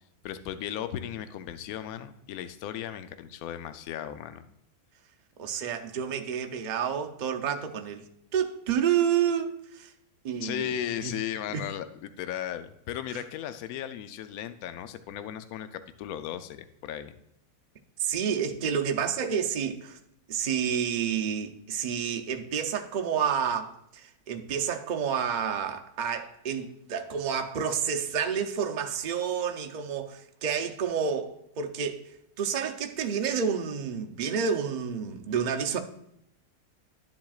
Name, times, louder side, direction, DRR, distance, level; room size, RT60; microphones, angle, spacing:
voice 1, 0.2-4.5 10.4-17.2, left 10 dB, 75° left, 1.0 m, -36 dB
voice 2, 5.4-9.9 10.2-10.7 11.0-11.1 11.5-11.7 13.1-13.2 18.0-20.0 20.3-35.8, right 7 dB, 60° right, 0.4 m, -29 dB
12.0 x 7.4 x 2.4 m
omnidirectional pair, 1.7 m